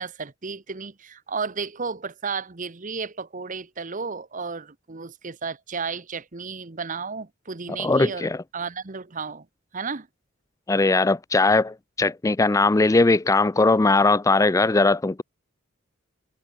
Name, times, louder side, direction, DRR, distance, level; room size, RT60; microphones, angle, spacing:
voice 1, 0.0-9.5 9.7-10.1, right 5 dB, 40° right, 1.0 m, -33 dB
voice 2, 7.8-8.4 10.7-15.2, left 3 dB, 15° left, 0.4 m, -20 dB
head